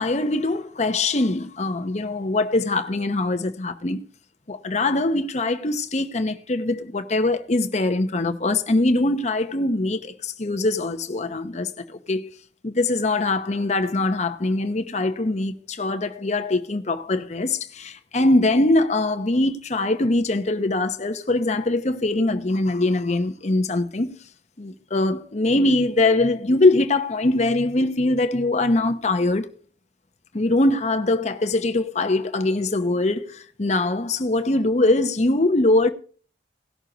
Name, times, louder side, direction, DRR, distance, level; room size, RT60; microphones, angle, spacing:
voice 1, 0.0-4.0 4.5-12.2 12.6-24.1 24.6-29.5 30.3-35.9, left 2 dB, 35° left, 0.8 m, -22 dB
17.5 x 6.3 x 3.9 m
head